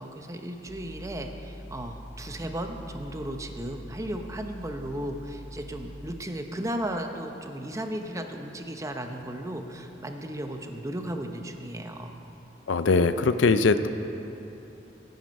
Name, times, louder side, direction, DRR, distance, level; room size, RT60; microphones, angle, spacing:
voice 1, 0.0-12.1, right 1 dB, 15° right, 5 dB, 0.8 m, -35 dB
sound 1, 0.7-6.2, equal, 70° left, 2.2 m, -44 dB
voice 2, 12.7-13.9, left 4 dB, 85° left, 11 dB, 0.5 m, -21 dB
16.5 x 9.5 x 5.3 m, 3.0 s
head